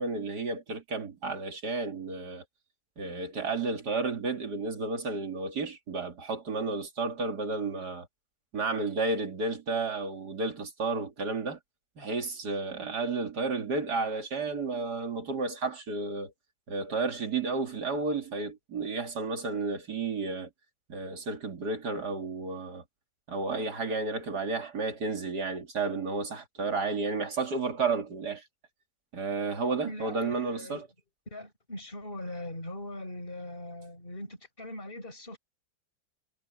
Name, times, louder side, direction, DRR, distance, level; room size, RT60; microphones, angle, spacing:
voice 1, 0.0-2.4 3.0-8.1 8.5-11.6 12.0-16.3 16.7-20.5 20.9-22.8 23.3-28.4 29.1-30.9, right 3 dB, 65° right, 3.0 m, -32 dB
voice 2, 29.8-30.9 31.3-35.4, left 1 dB, 30° left, 6.1 m, -41 dB
omnidirectional pair, 1.9 m